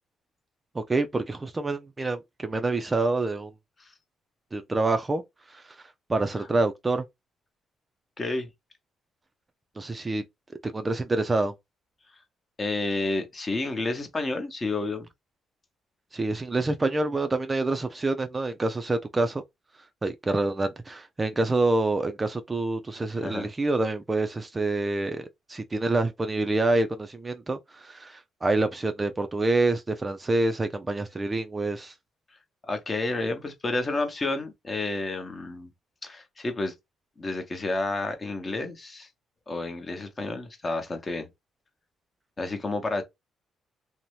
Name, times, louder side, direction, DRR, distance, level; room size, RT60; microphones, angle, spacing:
voice 1, 0.7-3.5 4.5-5.2 5.5-5.8 6.1-7.0 9.8-10.2 10.6-11.5 16.1-19.4 20.0-31.9, right 2 dB, 25° right, 0.4 m, -27 dB
voice 2, 8.2-8.5 12.6-15.1 23.1-23.5 32.7-35.7 36.0-36.7 37.2-39.1 39.5-41.3 42.4-43.0, left 2 dB, 30° left, 0.8 m, -30 dB
2.7 x 2.1 x 3.1 m
cardioid pair, 90°, 0 cm